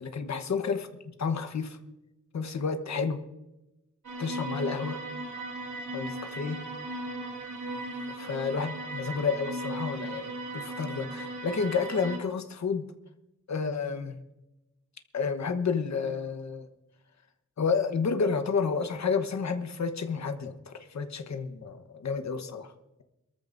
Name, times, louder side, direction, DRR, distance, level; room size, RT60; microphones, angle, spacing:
voice 1, 0.0-1.8 2.3-3.2 4.2-5.0 5.9-6.6 8.2-12.8 13.5-14.2 15.1-16.7 17.6-22.7, left 5 dB, 60° left, 7 dB, 1.2 m, -30 dB
sound 1, 4.0-12.2, right 1 dB, 70° right, 2.3 m, -37 dB
23.0 x 14.0 x 2.6 m, 0.96 s
wide cardioid pair, 135°, 30 cm